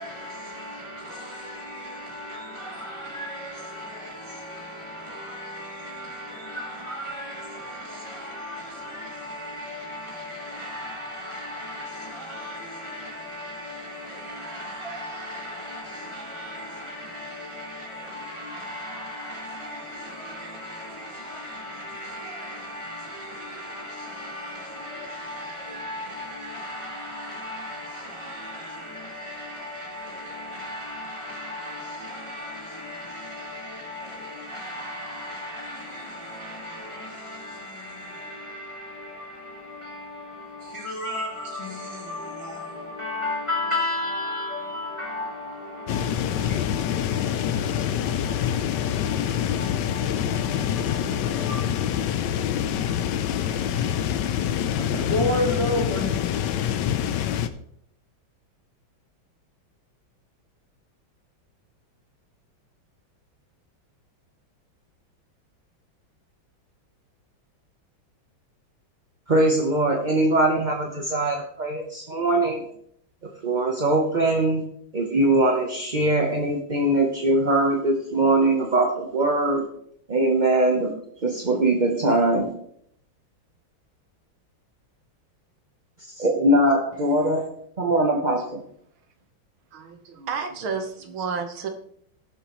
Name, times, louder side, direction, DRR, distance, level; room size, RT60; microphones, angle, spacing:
voice 1, 0.0-52.3 54.8-56.1, left 1 dB, 15° left, 1.4 m, -35 dB
sound 1, 45.9-57.5, left 10 dB, 70° left, 1.2 m, -26 dB
voice 2, 69.3-72.7 73.4-74.6 74.9-79.7 80.1-80.9 81.2-82.5 86.1-87.5 87.8-88.6, right 1 dB, 35° right, 0.7 m, -21 dB
voice 3, 89.7-91.7, right 5 dB, 80° right, 2.0 m, -31 dB
18.0 x 7.1 x 3.1 m
omnidirectional pair, 2.2 m